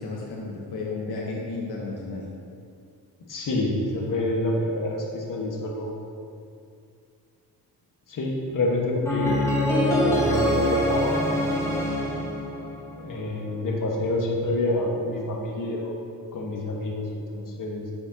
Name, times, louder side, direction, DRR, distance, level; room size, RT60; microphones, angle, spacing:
voice 1, 0.0-2.2, left 3 dB, 85° left, -2 dB, 1.1 m, -33 dB
voice 2, 3.3-6.0 8.1-11.4 13.0-16.0 16.3-17.1 17.3-17.9, left 1 dB, 55° left, -1 dB, 1.5 m, -27 dB
sound 1, 9.1-13.1, equal, 10° left, 1.9 m, -24 dB
9.7 x 7.2 x 2.9 m, 2.4 s
cardioid pair, 95°, 38 cm